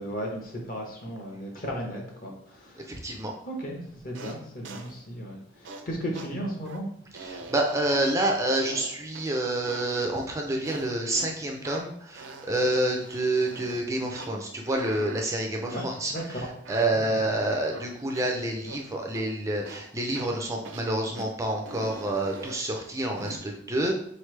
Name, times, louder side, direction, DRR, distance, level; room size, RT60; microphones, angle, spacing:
voice 1, 0.0-3.0 3.4-6.9 15.7-15.8 16.1-16.4 16.9-17.2, equal, 45° left, 0 dB, 1.0 m, -35 dB
voice 2, 2.9-3.3 7.2-16.4 16.7-23.9, right 1 dB, 15° right, 1 dB, 0.4 m, -28 dB
sound 1, 4.1-4.4 4.6-4.9 5.7-5.8 6.1-6.3 6.6-6.8 7.2-8.3 8.7-9.3 9.6-10.0 10.6-11.3 11.7-11.9 12.2-13.8 14.2-14.3 14.7-15.3 15.6-15.8 16.1-16.3 16.6-17.9 18.1-18.3 18.7-18.8 19.1-19.3 19.6-19.9 20.1-20.4 20.6-20.9 21.1-21.3 21.7-22.6 23.1-23.4, right 3 dB, 70° right, 0.5 m, -43 dB
4.0 x 3.2 x 3.2 m, 0.67 s
head